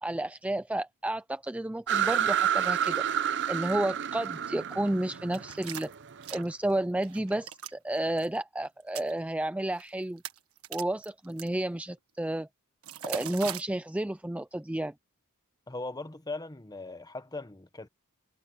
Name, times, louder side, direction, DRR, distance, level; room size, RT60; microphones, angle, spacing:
voice 1, 0.0-3.1 3.5-5.9 6.3-10.2 10.7-12.5 13.0-14.9, right 1 dB, 5° right, 0.4 m, -31 dB
sound 1, 1.9-6.4, right 9 dB, 55° right, 0.7 m, -29 dB
sound 2, 5.3-6.7 7.0-7.7 8.1-8.3 8.8-9.1 9.7-9.9 10.2-11.5 12.8-13.6, right 9 dB, 75° right, 1.5 m, -40 dB
voice 2, 15.7-17.9, left 2 dB, 20° left, 1.1 m, -39 dB
head